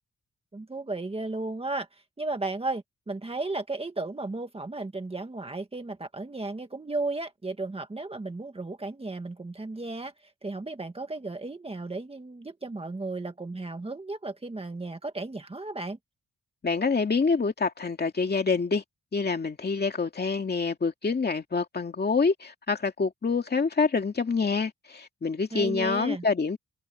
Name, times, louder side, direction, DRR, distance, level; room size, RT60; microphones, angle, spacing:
voice 1, 0.5-1.9 2.2-10.1 10.4-16.0 25.5-26.2, right 2 dB, 20° right, 1.8 m, -34 dB
voice 2, 16.6-18.8 19.1-26.6, left 4 dB, 30° left, 2.4 m, -26 dB
wide cardioid pair, 170°, 31 cm